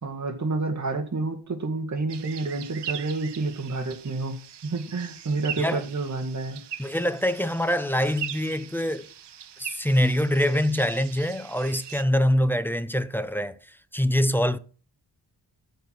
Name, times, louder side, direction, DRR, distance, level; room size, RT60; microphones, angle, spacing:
voice 1, 0.0-6.6, right 3 dB, 45° right, 1.9 m, -29 dB
sound 1, 2.1-12.0, right 10 dB, 90° right, 0.8 m, -40 dB
voice 2, 6.8-9.1 9.6-13.6 13.9-14.6, equal, 5° left, 0.7 m, -24 dB
13.5 x 4.7 x 5.9 m
wide cardioid pair, 100°, 40 cm